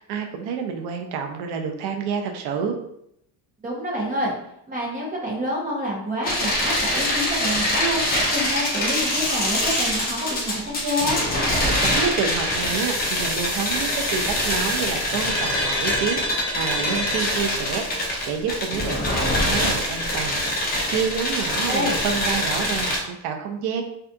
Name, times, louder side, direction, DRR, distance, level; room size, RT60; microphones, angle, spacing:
voice 1, 0.0-2.8 11.6-23.8, right 6 dB, 70° right, 4 dB, 0.5 m, -29 dB
voice 2, 3.6-4.3 4.7-11.2 21.7-21.9, equal, 20° right, -4 dB, 0.7 m, -27 dB
sound 1, 6.2-23.0, left 1 dB, 25° left, 0.4 m, -24 dB
2.6 x 2.3 x 2.3 m, 0.74 s
cardioid pair, 160°, 42 cm